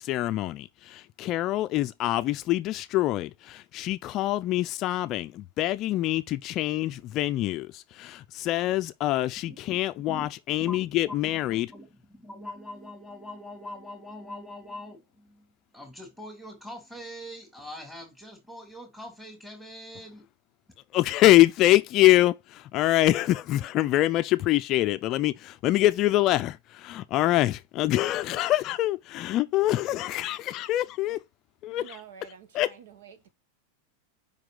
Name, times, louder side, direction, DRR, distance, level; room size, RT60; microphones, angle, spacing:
voice 1, 0.0-11.7 20.9-31.2 31.6-32.0 32.5-32.7, left 16 dB, 40° left, 0.4 m, -25 dB
voice 2, 9.9-10.3 10.6-10.8 11.1-11.2 11.5-20.3, left 1 dB, 5° right, 2.8 m, -43 dB
voice 3, 31.7-33.3, right 7 dB, 80° right, 1.2 m, -48 dB
5.3 x 4.9 x 3.8 m
supercardioid pair, 135°, 0 cm